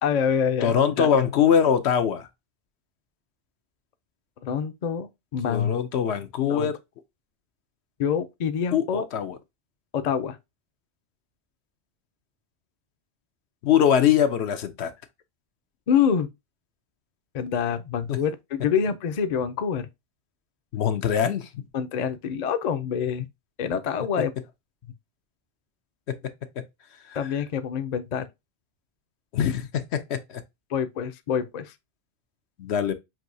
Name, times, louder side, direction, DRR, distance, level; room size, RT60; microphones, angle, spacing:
voice 1, 0.0-1.1 4.4-5.7 6.5-6.7 8.0-9.0 9.9-10.4 15.9-16.3 17.3-19.9 21.7-23.3 23.6-24.3 27.1-28.3 30.7-31.7, left 7 dB, 50° left, 0.6 m, -26 dB
voice 2, 0.6-2.3 5.5-6.8 8.7-9.4 13.6-14.9 18.1-18.2 20.7-21.6 26.1-26.2 26.6-26.7 27.1-27.3 29.3-30.4 32.6-32.9, left 8 dB, 80° left, 0.9 m, -23 dB
6.0 x 2.7 x 2.6 m
omnidirectional pair, 1.1 m